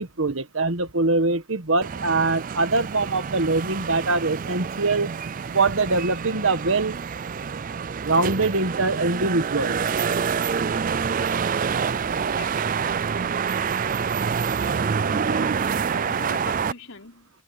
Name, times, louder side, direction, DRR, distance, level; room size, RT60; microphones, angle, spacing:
voice 1, 0.0-5.1 5.5-7.0 8.0-9.8, right 3 dB, 65° right, 1.4 m, -23 dB
sound 1, 1.8-16.7, right 6 dB, 40° right, 0.4 m, -27 dB
voice 2, 15.0-17.4, left 3 dB, 70° left, 5.0 m, -42 dB
open air
head